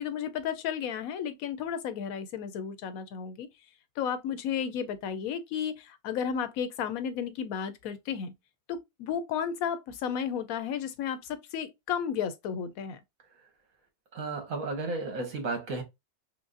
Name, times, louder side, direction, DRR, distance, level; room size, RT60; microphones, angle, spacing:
voice 1, 0.0-3.5 4.0-8.3 8.7-13.0, left 8 dB, 90° left, 1.0 m, -33 dB
voice 2, 14.1-15.8, right 3 dB, 75° right, 1.6 m, -33 dB
4.7 x 2.0 x 2.4 m
omnidirectional pair, 1.4 m